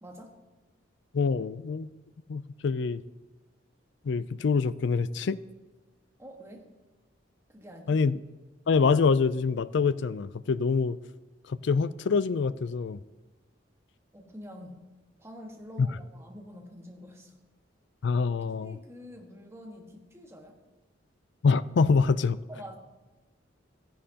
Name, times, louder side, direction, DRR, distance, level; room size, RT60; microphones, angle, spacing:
voice 1, 0.0-0.4 6.2-6.7 7.5-8.0 14.1-14.9 15.2-17.4 18.6-20.6 22.5-22.7, equal, 15° right, 1.4 m, -46 dB
voice 2, 1.1-1.9 2.3-3.0 4.0-5.4 7.9-8.2 8.7-11.0 11.5-13.0 15.8-15.9 18.0-18.8 21.4-22.4, left 5 dB, 65° left, 0.4 m, -25 dB
15.5 x 10.5 x 2.8 m
head